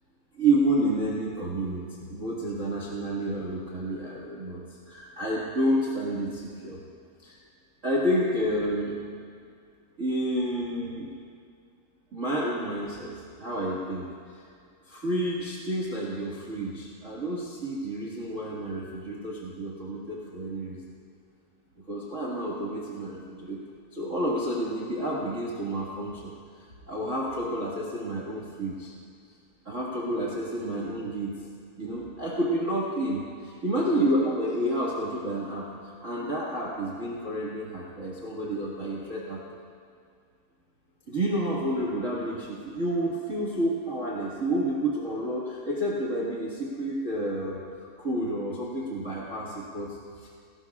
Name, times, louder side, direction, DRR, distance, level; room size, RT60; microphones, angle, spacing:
voice 1, 0.3-4.6 4.9-6.8 7.2-7.4 7.8-9.0 10.0-11.1 12.1-13.1 13.4-14.4 14.9-20.8 21.9-23.6 23.9-26.3 26.9-28.9 29.6-31.4 31.8-33.2 33.6-39.4 41.1-50.3, right 1 dB, 70° right, -5 dB, 0.7 m, -29 dB
18.0 x 16.5 x 2.4 m, 2.2 s
omnidirectional pair, 4.6 m